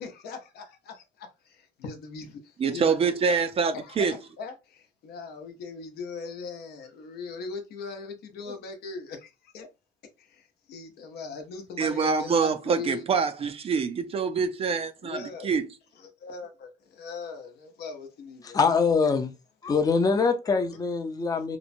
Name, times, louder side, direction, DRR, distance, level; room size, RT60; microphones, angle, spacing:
voice 1, 0.0-3.0 3.3-3.5 3.7-9.7 10.2-13.0 15.0-15.5 15.9-18.6 20.4-20.6, left 4 dB, 70° left, 0.7 m, -40 dB
voice 2, 2.6-4.1 11.8-15.7, right 5 dB, 35° right, 0.4 m, -25 dB
voice 3, 18.4-19.3 19.6-21.6, left 5 dB, 20° left, 0.5 m, -24 dB
2.9 x 2.1 x 2.5 m
cardioid pair, 110°, 17 cm